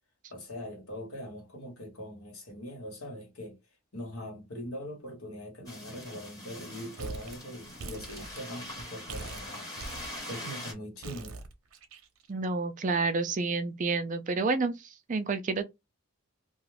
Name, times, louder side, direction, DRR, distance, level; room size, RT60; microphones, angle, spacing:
voice 1, 0.3-3.6 3.9-9.7 10.3-11.4, equal, 75° left, 1.3 m, -42 dB
sound 1, 5.7-10.7, left 1 dB, 15° left, 1.1 m, -43 dB
sound 2, 7.0-7.4 7.6-8.8 9.1-10.5 11.0-12.3, right 3 dB, 70° right, 0.7 m, -42 dB
voice 2, 12.3-14.7 15.1-15.6, right 3 dB, 35° right, 0.4 m, -29 dB
2.4 x 2.3 x 3.2 m
head